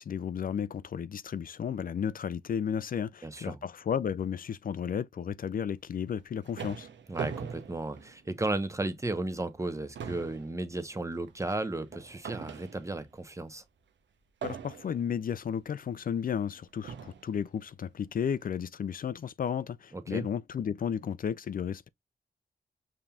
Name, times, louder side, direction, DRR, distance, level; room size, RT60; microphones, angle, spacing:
voice 1, 0.0-6.9 14.4-21.9, left 8 dB, 50° left, 0.4 m, -33 dB
voice 2, 3.2-3.6 7.1-13.6 19.9-20.2, right 2 dB, 15° right, 0.9 m, -34 dB
sound 1, 6.0-8.7 9.1-9.3 9.6-13.2 14.4-15.2 16.0-16.1 16.8-17.4, right 7 dB, 75° right, 0.7 m, -42 dB
5.3 x 2.8 x 2.3 m
supercardioid pair, 45°, 19 cm